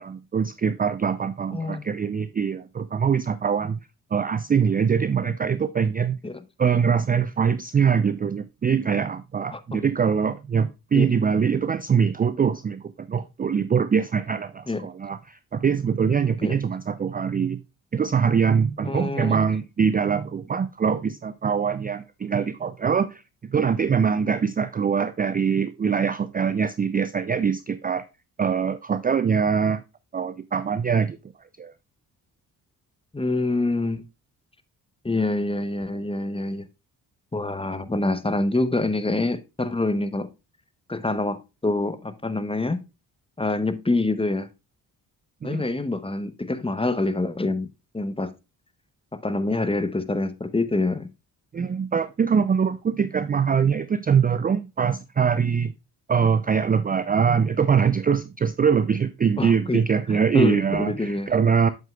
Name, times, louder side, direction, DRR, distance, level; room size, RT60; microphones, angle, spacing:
voice 1, 0.0-3.8 4.1-6.2 6.6-17.6 17.9-28.1 28.4-29.8 30.1-31.2 31.6-31.7 45.4-45.6 51.5-55.7 56.1-61.7, right 6 dB, 20° right, 0.4 m, -23 dB
voice 2, 1.5-1.8 6.2-6.4 9.5-9.8 10.9-11.1 14.7-14.9 16.4-16.6 18.8-19.4 33.1-34.1 35.0-36.7 37.3-40.3 40.9-42.9 43.4-44.5 45.4-47.7 47.9-48.3 49.1-51.1 59.4-59.8 60.1-61.3, left 2 dB, 10° left, 0.8 m, -26 dB
8.1 x 7.4 x 2.3 m
hypercardioid pair, 40°, 46 cm